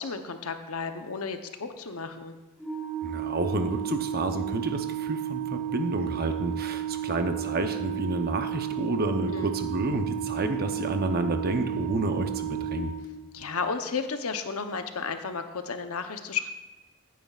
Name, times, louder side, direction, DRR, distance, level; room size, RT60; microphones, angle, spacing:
voice 1, 0.0-2.4 9.3-9.5 13.3-16.5, left 5 dB, 80° left, 7 dB, 0.8 m, -33 dB
Organ, 2.6-13.5, right 10 dB, ahead, 1.1 m, -33 dB
voice 2, 3.0-12.9, right 2 dB, 45° right, 7 dB, 0.8 m, -30 dB
14.5 x 9.4 x 2.4 m, 1.1 s
head